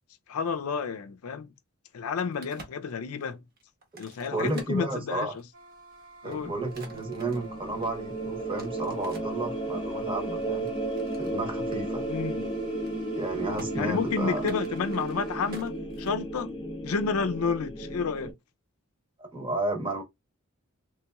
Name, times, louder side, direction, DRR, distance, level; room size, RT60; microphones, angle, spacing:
voice 1, 0.3-1.5 1.9-3.4 4.0-5.3 6.2-6.5 12.0-12.5 13.8-16.5 16.8-18.3, left 5 dB, 85° left, 0.5 m, -30 dB
Crack, 1.9-5.6 6.1-9.4 10.0-11.3 11.7-11.8 12.1-12.4 12.7-13.2 13.6-13.7 14.3-16.6, right 1 dB, 45° right, 1.0 m, -48 dB
voice 2, 4.3-5.3 6.2-10.7 11.2-12.0 13.2-14.5 19.2-20.0, right 2 dB, 25° right, 0.9 m, -32 dB
sound 1, 5.5-15.6, equal, 80° right, 1.7 m, -50 dB
sound 2, 6.4-18.3, right 1 dB, 20° left, 0.5 m, -34 dB
3.3 x 2.9 x 2.3 m
head